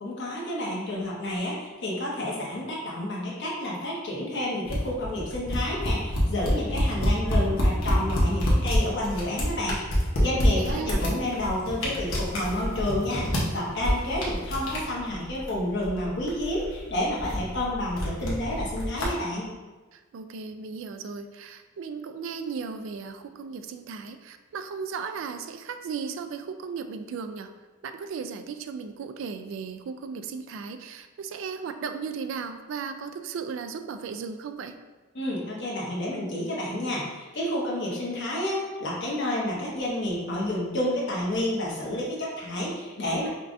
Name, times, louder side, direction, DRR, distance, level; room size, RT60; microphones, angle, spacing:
voice 1, 0.0-19.5 35.1-43.3, left 1 dB, 60° left, -4 dB, 1.0 m, -30 dB
sound 1, 4.6-19.0, equal, 90° left, 1.0 m, -27 dB
voice 2, 10.4-11.0 19.9-27.5 27.8-34.7, right 5 dB, 65° right, 8 dB, 0.3 m, -36 dB
5.4 x 2.4 x 2.6 m, 1.2 s
head